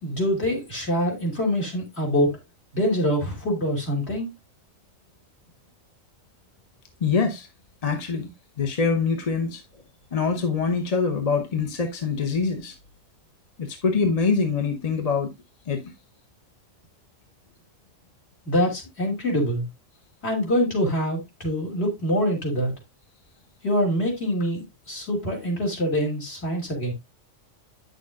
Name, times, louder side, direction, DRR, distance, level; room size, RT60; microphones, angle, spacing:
voice 1, 0.0-2.3 2.7-4.3 18.4-19.7 20.2-22.7 23.6-26.9, equal, 55° left, 3.1 m, -25 dB
voice 2, 7.0-7.5 7.8-8.3 8.6-9.6 10.1-12.7 13.6-15.3 15.7-15.9, left 5 dB, 35° left, 0.9 m, -24 dB
8.6 x 6.6 x 2.4 m
omnidirectional pair, 1.3 m